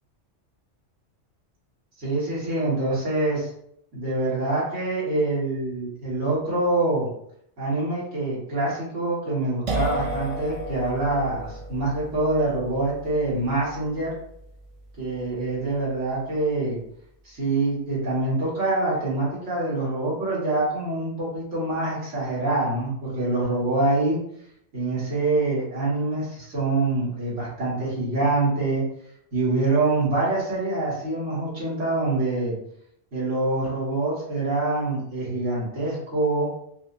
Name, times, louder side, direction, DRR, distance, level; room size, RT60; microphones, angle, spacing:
voice 1, 2.0-3.5 3.9-7.1 7.6-14.1 15.0-16.8 17.3-24.2 24.7-28.8 29.3-32.6 33.1-36.5, right 2 dB, 90° right, -6 dB, 1.8 m, -25 dB
sound 1, 9.7-17.2, right 2 dB, 55° right, 0.3 m, -35 dB
4.8 x 2.1 x 2.5 m, 0.70 s
omnidirectional pair, 1.2 m